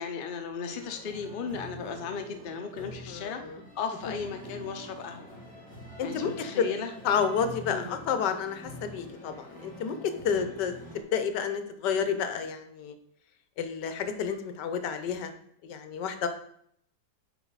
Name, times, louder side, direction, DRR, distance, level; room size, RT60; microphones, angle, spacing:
voice 1, 0.0-3.4 3.7-5.3 6.0-6.9 7.7-7.9 10.3-10.5, left 6 dB, 55° left, 5 dB, 0.6 m, -36 dB
sound 1, 0.7-11.0, equal, 5° left, 1.9 m, -46 dB
voice 2, 3.1-3.6 6.0-6.7 7.0-10.7 11.1-12.9 13.6-15.3 15.6-16.3, left 7 dB, 80° left, 9 dB, 1.3 m, -30 dB
8.0 x 5.1 x 4.0 m, 0.68 s
omnidirectional pair, 1.9 m